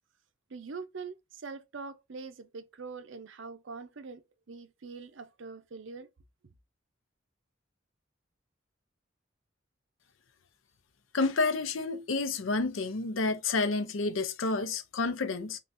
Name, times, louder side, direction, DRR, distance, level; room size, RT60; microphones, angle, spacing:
voice 1, 0.5-4.2 4.5-6.1, right 4 dB, 70° right, 0.6 m, -43 dB
voice 2, 11.1-15.6, left 3 dB, 90° left, 0.6 m, -29 dB
3.8 x 3.4 x 2.6 m
head